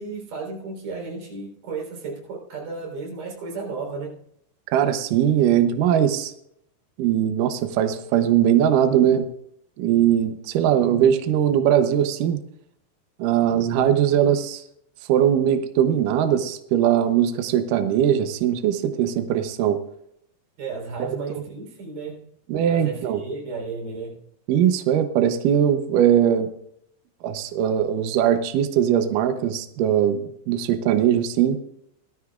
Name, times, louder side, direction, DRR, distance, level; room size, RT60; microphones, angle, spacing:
voice 1, 0.0-4.2 20.6-22.3 22.7-24.2, right 4 dB, 50° right, -1 dB, 5.2 m, -33 dB
voice 2, 4.7-6.3 7.0-9.3 9.8-12.4 13.2-14.6 15.1-19.8 21.0-21.2 22.5-23.2 24.5-26.5 27.2-31.6, right 10 dB, 85° right, 8 dB, 1.9 m, -20 dB
18.5 x 13.5 x 2.4 m, 0.73 s
omnidirectional pair, 5.0 m